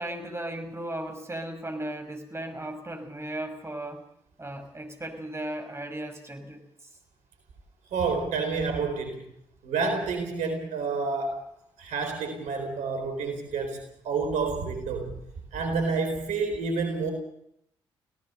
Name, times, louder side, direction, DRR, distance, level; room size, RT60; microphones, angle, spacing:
voice 1, 0.0-4.0 4.4-6.6, right 1 dB, 20° right, 6 dB, 5.8 m, -36 dB
voice 2, 7.9-9.2 9.6-11.4 11.8-15.2 15.5-17.1, right 4 dB, 65° right, 6 dB, 4.1 m, -29 dB
25.5 x 17.5 x 6.7 m, 0.74 s
hypercardioid pair, 45°, 13 cm